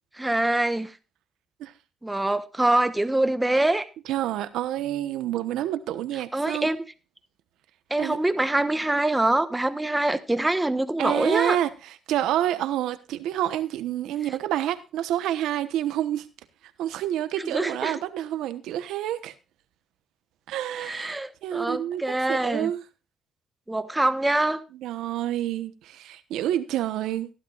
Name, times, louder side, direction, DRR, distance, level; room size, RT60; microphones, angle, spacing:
voice 1, 0.1-0.9 2.0-3.9 6.3-6.9 7.9-11.6 17.4-18.0 20.8-22.7 23.7-24.6, right 1 dB, 10° right, 1.1 m, -24 dB
voice 2, 4.1-6.7 8.0-8.2 11.0-16.3 16.8-19.3 20.5-22.8 24.8-27.3, right 12 dB, 90° right, 1.1 m, -28 dB
16.0 x 11.5 x 2.5 m
cardioid pair, 90°, 0 cm